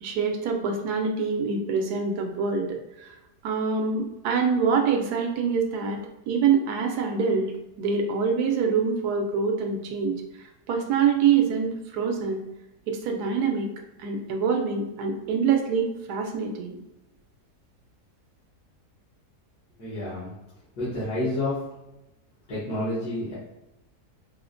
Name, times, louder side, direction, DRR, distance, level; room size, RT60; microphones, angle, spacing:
voice 1, 0.0-3.1 3.4-7.5 7.8-10.2 10.7-12.4 12.9-13.7 14.0-16.8, right 6 dB, 80° right, 3 dB, 1.1 m, -25 dB
voice 2, 19.8-20.3 20.8-21.6 22.5-23.3, left 1 dB, 80° left, -11 dB, 1.7 m, -29 dB
4.5 x 2.1 x 2.5 m, 0.91 s
omnidirectional pair, 1.7 m